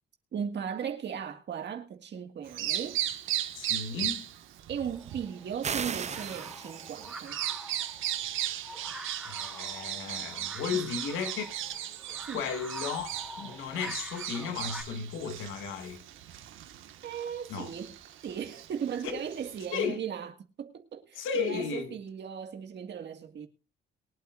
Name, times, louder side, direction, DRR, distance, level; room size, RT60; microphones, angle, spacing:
voice 1, 0.3-3.0 4.7-7.4 10.7-10.8 12.2-12.4 17.0-18.0 18.2-20.3 20.6-23.5, right 8 dB, 60° right, 2.1 m, -37 dB
Bird vocalization bird call bird song, 2.4-19.8, right 12 dB, 85° right, 1.8 m, -37 dB
voice 2, 3.5-4.2 9.2-11.5 12.3-16.0 17.5-17.7 19.0-19.2 19.7-20.0 21.2-22.0, left 6 dB, 90° left, 2.2 m, -34 dB
sound 1, 4.9-14.8, right 1 dB, ahead, 3.1 m, -46 dB
sound 2, 5.6-7.2, right 7 dB, 35° right, 0.7 m, -36 dB
22.5 x 8.5 x 2.6 m
cardioid pair, 90°, 20 cm